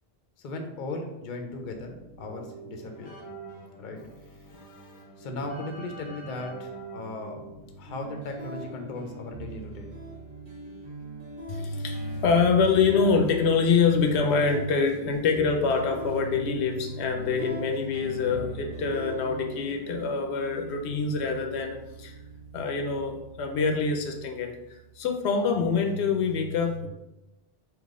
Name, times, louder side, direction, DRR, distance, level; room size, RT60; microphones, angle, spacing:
voice 1, 0.4-3.1 3.8-4.0 4.5-7.5 7.8-10.0, left 2 dB, 55° left, 4 dB, 0.7 m, -37 dB
Keyboard (musical), 1.7-9.0, right 3 dB, 10° left, 1.1 m, -46 dB
sound 1, 7.9-25.8, right 2 dB, 85° right, 1.5 m, -42 dB
voice 2, 11.5-22.1 22.5-24.5 25.0-26.9, left 5 dB, 90° left, 4 dB, 0.9 m, -25 dB
3.8 x 2.9 x 3.6 m, 0.96 s
omnidirectional pair, 1.1 m